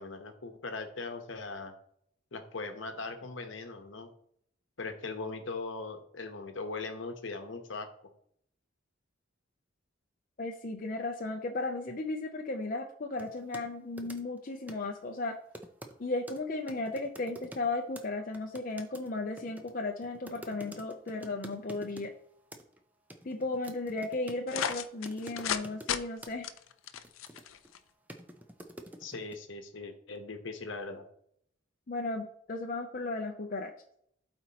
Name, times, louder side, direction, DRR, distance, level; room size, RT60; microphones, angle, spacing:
voice 1, 0.0-1.7 2.3-4.1 4.8-7.9 29.0-31.0, left 3 dB, 70° left, 6 dB, 1.0 m, -40 dB
voice 2, 10.4-15.4 16.0-22.1 23.2-26.5 31.9-33.7, left 2 dB, 45° left, 2 dB, 0.6 m, -35 dB
sound 1, 13.2-13.7 14.0-14.4 14.7-14.9 15.5-15.9 16.3-16.4 16.7-17.7 17.9-18.1 18.3-22.1 22.5-22.8 23.1-24.7 25.0-25.9 26.2-26.3 26.8-27.7 28.1-29.3, right 1 dB, 10° right, 0.5 m, -48 dB
sound 2, 24.5-25.6 25.9-26.0 26.4-27.8, left 8 dB, 90° left, 0.5 m, -33 dB
12.0 x 4.4 x 2.9 m, 0.68 s
head